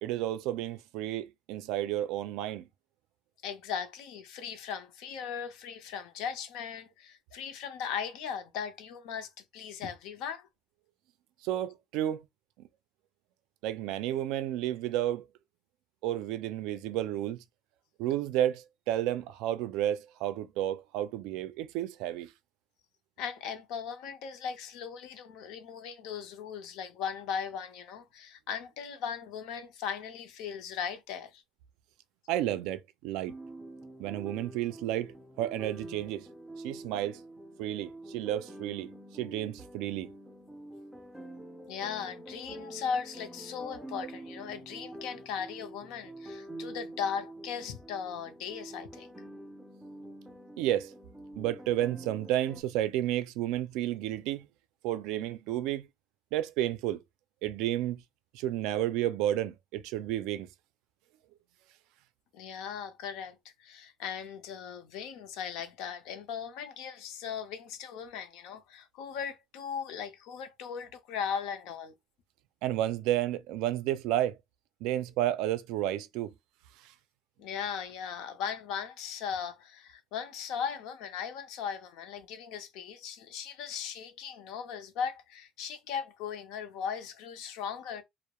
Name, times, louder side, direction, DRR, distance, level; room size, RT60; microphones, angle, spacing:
voice 1, 0.0-2.7 11.4-12.2 12.6-12.7 13.6-15.2 16.0-17.4 18.0-22.3 32.3-33.3 34.0-36.3 36.6-37.2 37.6-40.1 50.6-50.9 51.4-54.5 54.8-55.9 56.3-57.0 57.4-58.0 58.3-60.5 72.6-74.4 74.8-76.3 76.8-76.9, right 12 dB, 90° right, 0.3 m, -31 dB
voice 2, 3.4-10.5 23.2-31.4 41.7-49.1 62.3-71.9 77.4-88.0, left 7 dB, 80° left, 0.5 m, -38 dB
sound 1, 33.3-52.6, right 1 dB, ahead, 0.3 m, -47 dB
2.2 x 2.0 x 2.8 m
cardioid pair, 175°, 0 cm